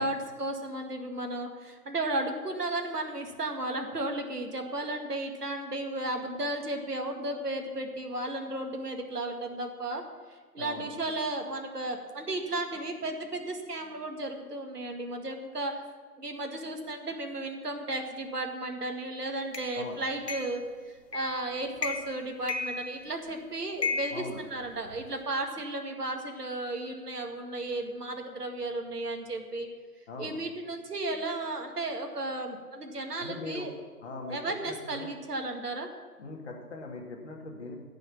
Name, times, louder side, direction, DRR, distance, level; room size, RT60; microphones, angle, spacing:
voice 1, 0.0-10.0 10.5-15.8 16.2-20.6 21.1-29.7 30.2-33.7 34.3-35.9, right 2 dB, 75° right, 4 dB, 2.1 m, -34 dB
sound 1, 19.5-19.7 20.3-20.6 21.1-21.4 21.8-22.2 22.5-23.3 23.8-25.1, left 4 dB, 85° left, 1.7 m, -34 dB
voice 2, 33.2-33.7 34.0-34.4 34.7-35.1 36.2-37.8, left 3 dB, 45° left, 1 dB, 2.4 m, -40 dB
16.5 x 6.5 x 7.1 m, 1.5 s
figure-of-eight pair, 150°, 47 cm